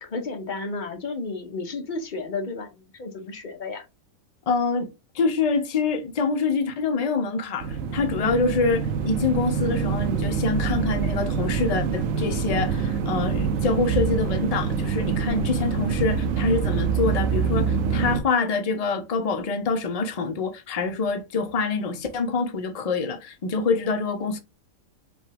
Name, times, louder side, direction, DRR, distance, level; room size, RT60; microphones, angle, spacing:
voice 1, 0.0-3.8, left 3 dB, 45° left, 0.8 m, -32 dB
voice 2, 4.5-4.9 5.1-24.4, left 4 dB, 75° left, 0.3 m, -25 dB
sound 1, 7.6-18.2, right 6 dB, 75° right, 1.0 m, -25 dB
5.2 x 2.3 x 3.3 m
omnidirectional pair, 1.4 m